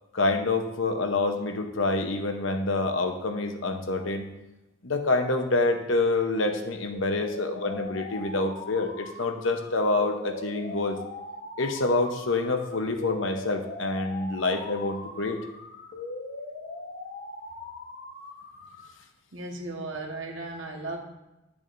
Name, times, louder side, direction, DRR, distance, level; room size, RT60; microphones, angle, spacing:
voice 1, 0.1-4.3 4.8-11.0 11.6-15.4, left 2 dB, 75° left, 6 dB, 0.9 m, -27 dB
sound 1, 6.9-18.9, left 3 dB, 55° left, 1.2 m, -40 dB
voice 2, 19.3-21.0, right 2 dB, 70° right, 0 dB, 1.4 m, -36 dB
10.5 x 7.1 x 2.6 m, 0.96 s
head